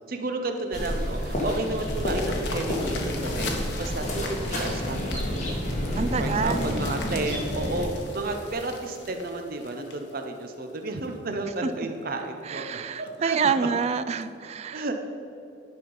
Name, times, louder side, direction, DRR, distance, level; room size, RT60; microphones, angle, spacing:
voice 1, 0.1-3.5 3.8-5.6 6.2-13.7 14.7-15.1, right 2 dB, 55° right, 5 dB, 0.7 m, -32 dB
sound 1, 0.6-11.1 11.6-11.7 12.2-12.3 12.6-12.7 13.1-13.3 14.2-14.3, left 4 dB, 75° left, 1.2 m, -40 dB
sound 2, 0.7-7.9, equal, 40° left, 1.9 m, -29 dB
voice 2, 6.0-6.8 7.1-7.2 12.4-14.8, right 6 dB, 35° right, 13 dB, 0.3 m, -27 dB
10.0 x 5.7 x 5.4 m, 2.7 s
head